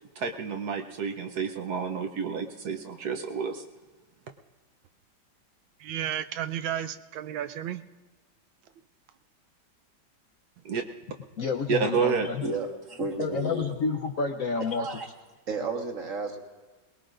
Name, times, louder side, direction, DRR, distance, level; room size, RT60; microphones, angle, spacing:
voice 1, 0.2-3.6 10.6-10.8 11.7-12.3, right 6 dB, 65° right, 5 dB, 1.2 m, -29 dB
voice 2, 5.8-7.8, right 10 dB, 85° right, 10 dB, 1.4 m, -33 dB
voice 3, 11.4-12.4 13.2-14.9, left 5 dB, 60° left, 5 dB, 0.9 m, -29 dB
voice 4, 12.4-13.7 14.7-15.1 15.5-16.4, right 3 dB, 45° right, 1 dB, 1.7 m, -32 dB
22.5 x 20.0 x 2.5 m, 1.3 s
omnidirectional pair, 2.1 m